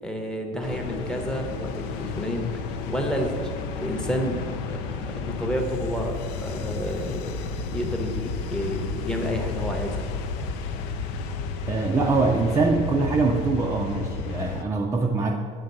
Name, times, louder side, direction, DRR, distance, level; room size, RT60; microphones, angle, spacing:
voice 1, 0.0-3.5 3.8-10.1, equal, 5° left, 2 dB, 0.8 m, -30 dB
sound 1, 0.6-14.6, left 4 dB, 75° left, 0.6 m, -32 dB
voice 2, 11.7-15.4, right 3 dB, 15° right, 1 dB, 0.4 m, -23 dB
8.5 x 3.8 x 5.3 m, 2.1 s
cardioid pair, 145°, 18 cm